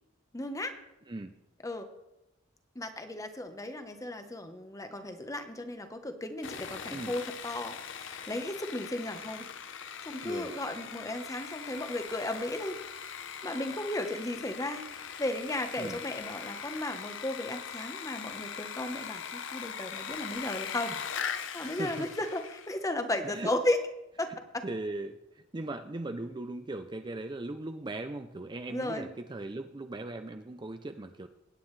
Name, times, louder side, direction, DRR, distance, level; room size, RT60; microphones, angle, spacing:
voice 1, 0.3-0.7 1.6-1.9 2.7-9.5 10.0-12.8 13.1-14.8 15.2-21.0 21.5-23.8 24.2-24.6 28.7-29.1, left 1 dB, 15° left, 7 dB, 0.9 m, -35 dB
Sawing, 6.4-22.9, left 7 dB, 70° left, 0.7 m, -41 dB
voice 2, 21.6-22.1 23.2-23.5 24.6-25.2 25.5-31.3, right 2 dB, 25° right, 7 dB, 0.5 m, -38 dB
21.5 x 9.2 x 3.2 m, 0.93 s
head